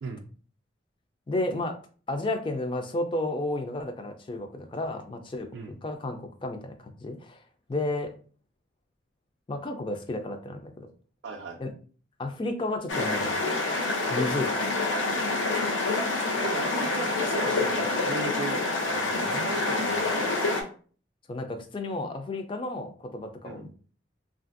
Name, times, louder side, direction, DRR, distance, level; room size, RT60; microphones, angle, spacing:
voice 1, 1.3-1.8 2.1-5.5 5.8-7.4 7.7-8.1 9.5-10.9 11.6-11.7 12.2-13.4 14.1-14.5 15.2-15.5 21.3-23.7, left 2 dB, 25° left, 6 dB, 0.3 m, -32 dB
voice 2, 11.2-11.6 16.4-18.6 18.9-20.3 23.4-23.7, right 3 dB, 65° right, 1 dB, 0.3 m, -37 dB
sound 1, 12.9-20.6, left 2 dB, 90° left, 0.6 m, -27 dB
3.1 x 2.4 x 2.5 m, 0.42 s
head